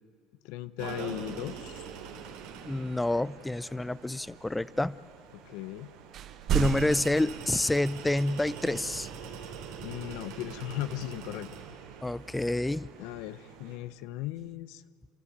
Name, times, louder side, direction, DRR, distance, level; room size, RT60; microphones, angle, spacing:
voice 1, 0.4-1.8 5.4-5.9 9.2-9.3 9.8-11.5 13.0-14.8, left 14 dB, 80° left, 14 dB, 0.7 m, -37 dB
sound 1, 0.8-13.8, right 7 dB, 85° right, 3.6 m, -44 dB
voice 2, 2.6-5.0 6.5-9.1 12.0-12.9, left 1 dB, 10° left, 19 dB, 0.5 m, -28 dB
sound 2, 2.8-5.8 6.1-8.3 9.5-10.7 12.5-13.0 13.7-14.5, right 10 dB, 50° right, 1.0 m, -37 dB
29.5 x 13.0 x 9.5 m, 2.2 s
supercardioid pair, 115°, 0 cm